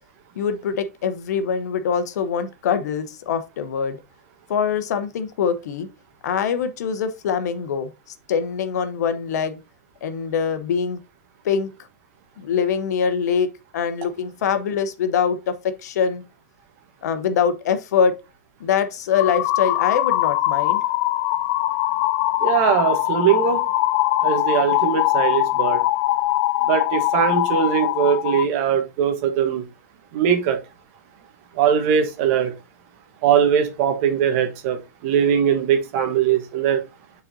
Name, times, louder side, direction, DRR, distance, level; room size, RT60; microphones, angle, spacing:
voice 1, 0.4-4.0 4.5-5.9 6.2-9.6 10.0-11.0 11.4-11.7 12.4-13.5 13.7-16.2 17.0-18.1 18.6-20.8, left 7 dB, 65° left, 0.9 m, -23 dB
sound 1, 19.1-28.5, left 16 dB, 40° left, 0.3 m, -22 dB
voice 2, 22.4-23.6 24.2-25.8 26.6-29.6 30.1-30.6 31.5-32.5 33.2-36.8, right 8 dB, 50° right, 1.3 m, -20 dB
8.9 x 4.1 x 2.7 m
hypercardioid pair, 125°, 10 cm